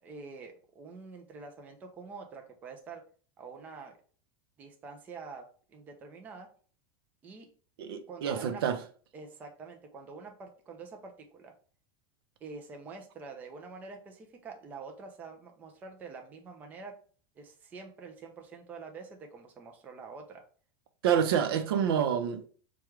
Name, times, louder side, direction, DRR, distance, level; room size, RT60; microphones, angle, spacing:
voice 1, 0.0-3.0 3.4-4.0 4.6-6.5 7.2-7.5 8.1-8.6 9.1-11.5 12.4-16.9 17.4-20.4, right 4 dB, 15° right, 0.4 m, -46 dB
voice 2, 7.8-8.8 21.0-22.5, right 8 dB, 75° right, 0.6 m, -28 dB
4.8 x 2.3 x 3.0 m
supercardioid pair, 170°, 12 cm